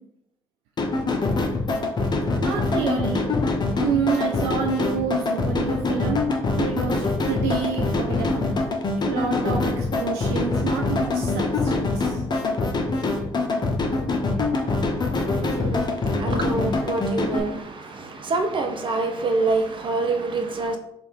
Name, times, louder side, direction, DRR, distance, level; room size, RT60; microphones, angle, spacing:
sound 1, 0.8-17.4, left 3 dB, 35° left, 0.8 m, -24 dB
voice 1, 2.4-3.3 3.8-6.2 6.6-8.5 9.0-12.2, right 7 dB, 80° right, 0.4 m, -28 dB
voice 2, 14.6-20.8, right 3 dB, 45° right, 0.8 m, -27 dB
3.5 x 2.4 x 4.4 m
hypercardioid pair, 45°, 12 cm